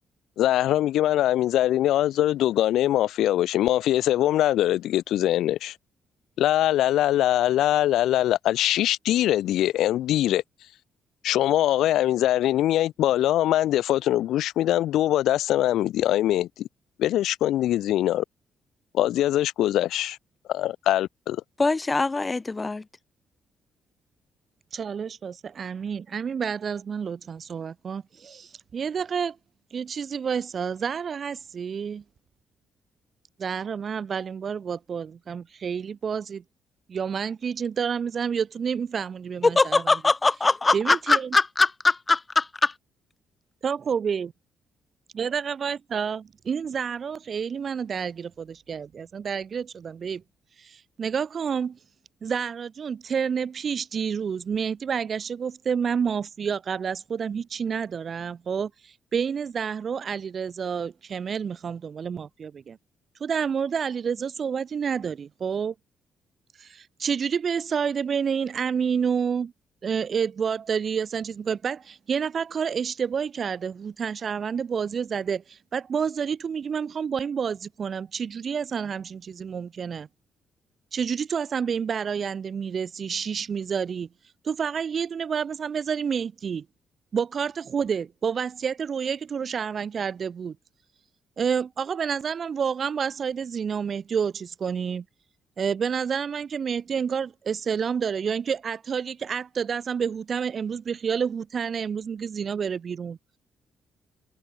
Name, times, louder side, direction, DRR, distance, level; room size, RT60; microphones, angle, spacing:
voice 1, 0.4-5.8 6.4-10.4 11.2-16.7 17.0-18.2 18.9-20.2 20.5-21.4, left 13 dB, 80° left, 0.4 m, -22 dB
voice 2, 21.6-22.8 39.6-41.7 42.1-42.7, left 3 dB, 25° left, 0.5 m, -22 dB
voice 3, 24.7-29.4 29.7-32.0 33.4-36.4 36.9-40.0 40.7-41.4 43.6-44.3 45.1-50.2 50.6-51.8 52.2-62.8 63.2-65.7 66.6-69.5 69.8-80.1 80.9-84.1 84.4-86.7 87.1-90.6 91.4-95.0 95.6-103.2, right 7 dB, 50° right, 0.6 m, -29 dB
cardioid pair, 90°, 0 cm